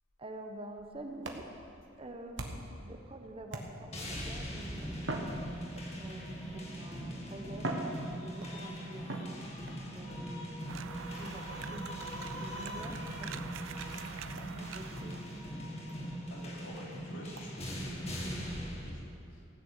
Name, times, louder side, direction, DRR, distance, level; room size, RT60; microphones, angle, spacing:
voice 1, 0.2-1.5 2.0-5.6 5.9-7.7 8.2-9.1 9.9-14.1 14.4-15.3, right 1 dB, 30° right, 4 dB, 1.0 m, -47 dB
sound 1, 0.7-2.8 3.5-4.1 5.0-6.1 6.9-7.0 7.5-8.6 9.1-9.8 11.2-11.6 12.7-12.8 13.5-13.6 13.9-14.0 14.4-14.5 14.8-14.9 15.4-15.5 15.9-16.0 16.4-16.5 17.4-17.5, right 2 dB, 65° right, 1.3 m, -41 dB
sound 2, 3.9-18.9, equal, 35° left, 1.9 m, -41 dB
sound 3, 10.7-15.6, right 8 dB, 85° right, 0.4 m, -46 dB
voice 2, 16.2-19.5, left 1 dB, 85° left, -3 dB, 2.9 m, -50 dB
15.5 x 6.8 x 8.3 m, 2.4 s
head